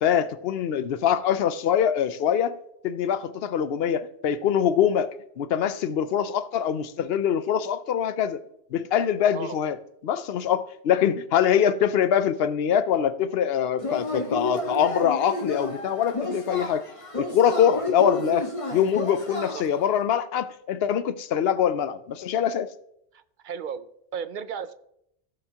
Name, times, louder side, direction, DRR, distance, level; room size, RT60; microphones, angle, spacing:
voice 1, 0.0-2.5 2.8-8.4 8.7-9.8 10.0-16.8 17.2-22.7, left 9 dB, 70° left, 0.8 m, -24 dB
Yell / Cheering, 13.8-19.9, left 1 dB, 30° left, 1.3 m, -31 dB
voice 2, 23.1-23.9 24.1-24.7, right 7 dB, 55° right, 0.6 m, -34 dB
15.0 x 6.8 x 2.9 m
omnidirectional pair, 1.1 m